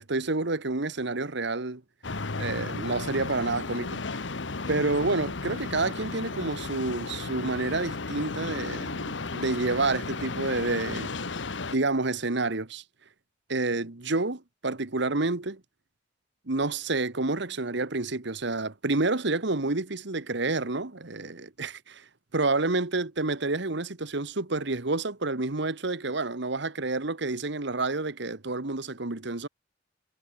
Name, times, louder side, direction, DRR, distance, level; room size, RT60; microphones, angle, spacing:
voice 1, 0.0-1.8 2.4-4.0 4.7-11.1 11.7-12.8 13.5-15.6 16.5-22.0 22.3-29.5, right 3 dB, 65° right, 1.6 m, -29 dB
sound 1, 2.0-11.8, left 3 dB, 70° left, 1.3 m, -34 dB
head